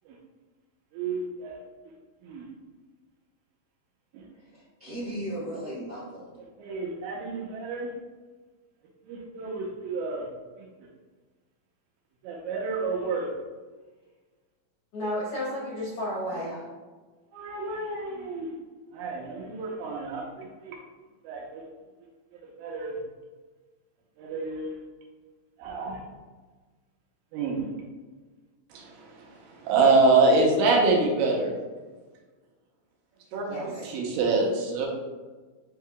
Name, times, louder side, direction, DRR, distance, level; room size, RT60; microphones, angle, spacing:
voice 1, 0.9-1.5 2.2-2.4 6.6-7.9 9.1-10.3 12.2-13.3 17.3-18.5 18.9-20.8 21.2-21.6 22.6-22.9 24.2-24.8 25.6-26.0 27.3-27.7 28.7-31.5 33.3-33.5 33.8-34.9, right 3 dB, 85° right, -1 dB, 2.5 m, -26 dB
voice 2, 4.4-6.3 16.3-16.6 33.4-33.8, right 1 dB, 70° right, -10 dB, 0.9 m, -37 dB
voice 3, 14.9-16.5 33.3-33.9, equal, 80° left, -6 dB, 1.3 m, -32 dB
8.3 x 2.8 x 2.3 m, 1.3 s
omnidirectional pair, 4.0 m